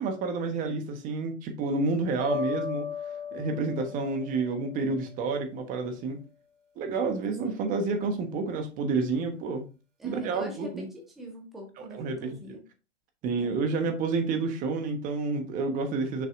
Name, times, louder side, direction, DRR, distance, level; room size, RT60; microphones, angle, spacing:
voice 1, 0.0-2.9 3.3-6.2 6.8-9.7 10.0-10.8 11.9-12.6 13.2-16.3, right 4 dB, 20° right, 1.2 m, -29 dB
sound 1, 2.2-5.3, left 6 dB, 85° right, 2.4 m, -36 dB
voice 2, 10.0-12.6 13.4-13.6, right 1 dB, ahead, 0.3 m, -44 dB
6.4 x 5.6 x 2.6 m
hypercardioid pair, 135°, 37 cm